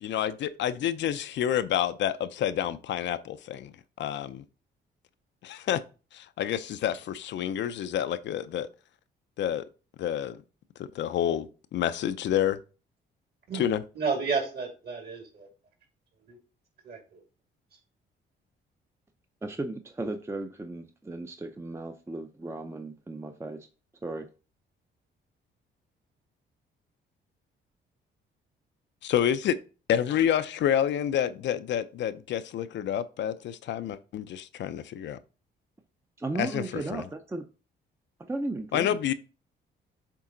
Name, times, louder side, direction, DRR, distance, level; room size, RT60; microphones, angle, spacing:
voice 1, 0.0-4.4 5.4-5.8 6.1-8.7 9.4-9.6 10.0-10.4 10.8-12.6 13.5-13.8 29.0-29.6 29.9-35.2 36.4-37.0 38.7-39.1, left 10 dB, 65° left, 0.5 m, -28 dB
voice 2, 14.0-15.5 16.3-16.4 16.8-17.2, right 4 dB, 55° right, 2.4 m, -31 dB
voice 3, 19.4-23.7 24.0-24.3 36.2-37.5 38.2-39.0, right 2 dB, 15° right, 0.6 m, -35 dB
7.4 x 3.7 x 3.8 m
cardioid pair, 90°, 20 cm